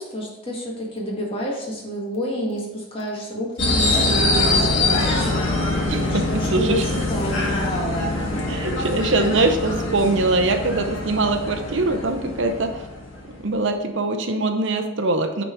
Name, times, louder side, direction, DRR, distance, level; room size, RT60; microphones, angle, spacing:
voice 1, 0.0-5.5 5.9-7.7, equal, 25° left, -2 dB, 1.8 m, -29 dB
sound 1, 3.6-13.5, left 2 dB, 65° left, 1.8 m, -24 dB
voice 2, 5.9-6.8 8.5-12.8 13.4-15.4, right 2 dB, 60° right, 6 dB, 0.7 m, -22 dB
9.0 x 4.1 x 4.6 m, 0.98 s
head